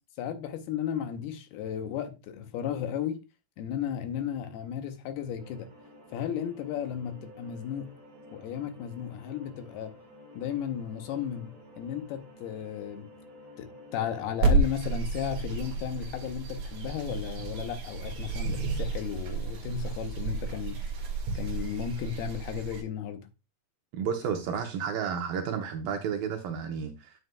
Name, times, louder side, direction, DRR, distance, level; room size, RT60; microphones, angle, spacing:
voice 1, 0.2-3.2 3.6-5.7 6.1-7.9 8.3-10.0 10.3-13.1 13.6-20.8 21.3-23.3, left 9 dB, 75° left, 2.7 m, -34 dB
sound 1, 5.4-14.4, left 1 dB, 35° right, 2.6 m, -52 dB
sound 2, 14.4-22.8, right 3 dB, 50° right, 2.9 m, -31 dB
voice 2, 23.9-27.1, right 7 dB, 75° right, 2.3 m, -32 dB
10.5 x 7.8 x 2.3 m
omnidirectional pair, 4.8 m